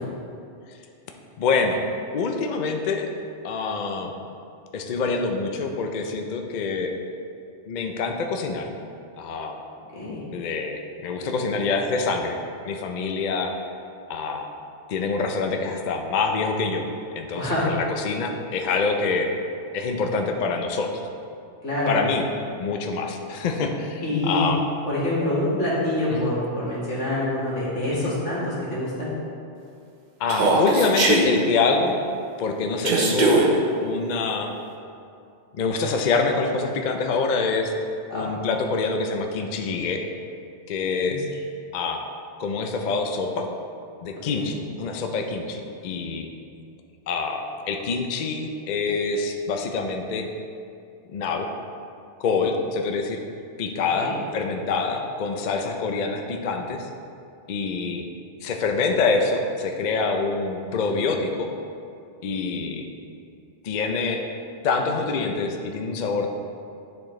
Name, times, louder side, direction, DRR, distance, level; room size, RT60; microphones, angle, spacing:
voice 1, 1.4-1.8 2.1-3.1 3.4-4.1 4.7-6.9 7.7-8.7 9.2-9.6 10.3-12.4 12.6-13.5 14.1-14.5 14.9-16.8 17.1-19.3 19.7-20.9 21.9-22.2 22.6-24.6 26.1-26.3 27.9-28.1 30.2-32.0 32.4-33.5 33.8-34.5 35.5-40.0 40.7-41.3 41.7-42.0 42.4-43.5 44.0-46.3 47.1-50.3 51.1-51.5 52.2-53.2 53.6-56.9 57.5-58.0 58.4-61.5 62.2-62.9 63.6-64.2 64.6-66.3, left 4 dB, 55° left, 3 dB, 0.5 m, -26 dB
voice 2, 17.3-17.7 21.6-22.0 24.0-24.5 24.9-29.1 38.1-38.3 41.1-41.2 44.1-44.5 54.0-54.1, left 1 dB, 85° left, -8 dB, 2.2 m, -26 dB
Human voice, 30.3-31.3 32.8-33.5, right 3 dB, 45° right, 0.8 m, -19 dB
10.5 x 4.4 x 3.1 m, 2.5 s
omnidirectional pair, 1.2 m